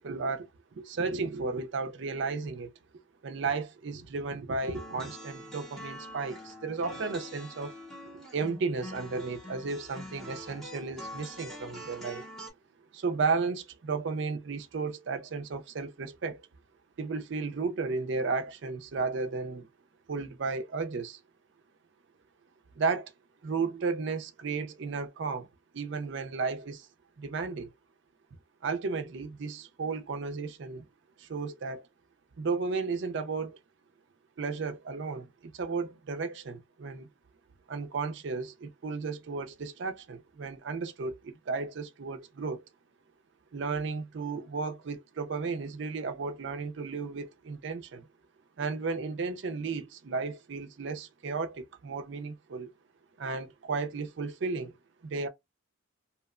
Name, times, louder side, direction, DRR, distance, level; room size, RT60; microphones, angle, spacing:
voice 1, 0.0-2.7 3.2-7.7 8.3-12.2 12.9-16.4 17.0-19.7 20.1-21.2 22.8-23.1 23.4-25.5 25.7-26.9 27.2-27.7 28.6-30.9 31.2-31.9 32.4-33.6 34.4-37.1 37.7-42.6 43.5-48.1 48.6-52.7 53.2-54.7 55.0-55.3, right 4 dB, 55° right, 0.4 m, -34 dB
sound 1, 4.6-12.5, equal, ahead, 0.6 m, -45 dB
2.8 x 2.0 x 2.3 m
head